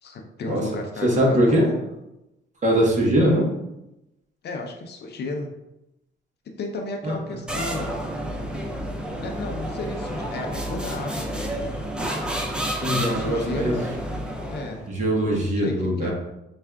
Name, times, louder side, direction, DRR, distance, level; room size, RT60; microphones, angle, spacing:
voice 1, 0.0-1.8 4.4-5.5 6.6-8.0 9.2-11.7 13.0-13.8 14.4-14.8 15.4-16.1, left 2 dB, 55° left, 2 dB, 0.6 m, -33 dB
voice 2, 1.0-1.7 2.6-3.5 7.0-7.1 12.8-13.9 14.9-16.1, equal, 35° right, -2 dB, 1.0 m, -21 dB
sound 1, 7.5-14.9, right 1 dB, 5° right, 0.5 m, -30 dB
4.4 x 2.4 x 2.3 m, 0.90 s
cardioid pair, 90°, 20 cm